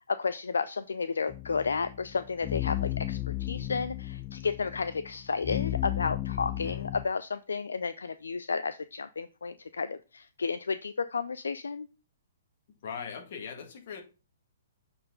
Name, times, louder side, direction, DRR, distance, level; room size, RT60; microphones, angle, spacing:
voice 1, 0.1-11.9, left 5 dB, 80° left, 0.4 m, -32 dB
sound 1, 1.3-7.1, left 16 dB, 25° left, 0.5 m, -34 dB
voice 2, 6.5-6.9 12.8-14.0, left 6 dB, 55° left, 1.9 m, -40 dB
7.5 x 4.4 x 3.8 m
hypercardioid pair, 125°, 0 cm